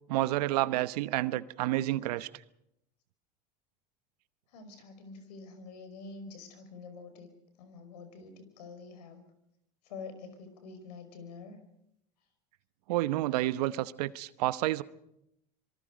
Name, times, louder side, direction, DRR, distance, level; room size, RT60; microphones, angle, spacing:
voice 1, 0.1-2.3 12.9-14.8, right 16 dB, 75° right, 1.0 m, -29 dB
voice 2, 4.5-7.3 7.6-9.2 9.9-11.6, left 4 dB, 80° left, 5.3 m, -47 dB
26.0 x 23.0 x 5.2 m
hypercardioid pair, 90°, 20 cm